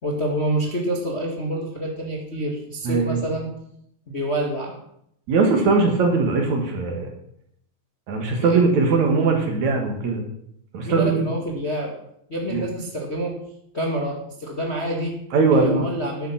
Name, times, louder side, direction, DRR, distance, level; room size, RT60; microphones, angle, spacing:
voice 1, 0.0-3.5 4.1-4.8 8.4-8.6 10.8-11.9 12.3-13.4 13.7-15.2 15.5-16.3, right 1 dB, 30° left, -1 dB, 1.4 m, -27 dB
voice 2, 2.8-3.2 5.3-7.1 8.1-10.2 10.7-11.2 12.5-12.6 15.3-15.9, right 4 dB, 60° right, 3 dB, 2.9 m, -20 dB
11.5 x 9.5 x 5.9 m, 0.73 s
omnidirectional pair, 3.9 m